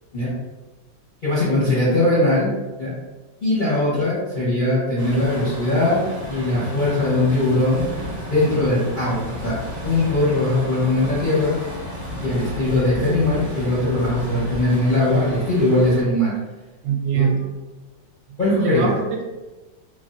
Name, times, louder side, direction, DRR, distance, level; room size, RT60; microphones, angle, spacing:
voice 1, 1.2-2.9 3.4-7.9 8.3-11.5 12.2-16.3 17.1-17.3 18.4-18.9, left 1 dB, 50° left, -10 dB, 0.6 m, -20 dB
Truck, 5.0-16.0, equal, 60° right, 0.3 m, -32 dB
voice 2, 16.8-17.6 18.6-19.3, right 7 dB, 75° right, 0 dB, 1.2 m, -23 dB
3.2 x 2.3 x 2.5 m, 1.1 s
omnidirectional pair, 2.0 m